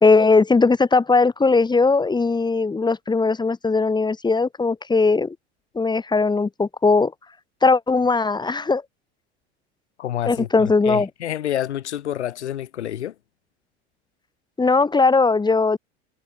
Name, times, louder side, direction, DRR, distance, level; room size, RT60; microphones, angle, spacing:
voice 1, 0.0-5.3 5.7-7.1 7.6-8.8 10.3-11.1 14.6-15.8, left 4 dB, 10° left, 1.3 m, -19 dB
voice 2, 10.0-13.1, left 11 dB, 80° left, 3.8 m, -28 dB
hypercardioid pair, 85°, 34 cm